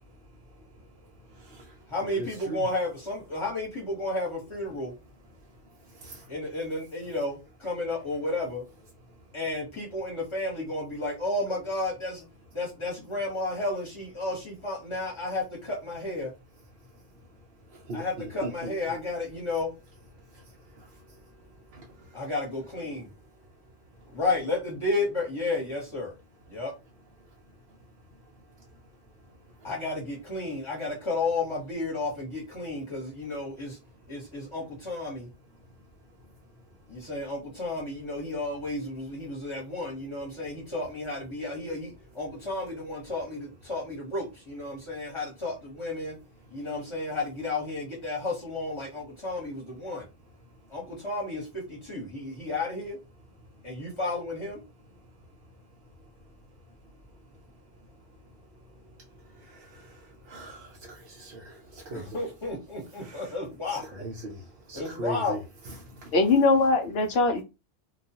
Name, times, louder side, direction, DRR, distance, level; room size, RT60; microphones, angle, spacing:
voice 1, 1.9-4.9 6.3-8.6 9.3-12.2 12.5-16.3 17.9-19.7 22.1-23.0 24.1-26.1 26.5-26.7 29.6-33.8 34.1-35.3 36.9-46.2 46.5-50.0 50.7-53.0 53.6-54.6 61.9-63.8 64.7-65.4, left 2 dB, 25° left, 1.1 m, -32 dB
voice 2, 18.4-18.7 60.3-60.7 61.1-61.5 61.9-62.1 63.0-63.1 64.0-64.4 64.7-65.4, right 1 dB, 60° right, 0.7 m, -37 dB
voice 3, 66.1-67.4, left 3 dB, 65° left, 0.7 m, -21 dB
2.3 x 2.3 x 2.7 m
omnidirectional pair, 1.3 m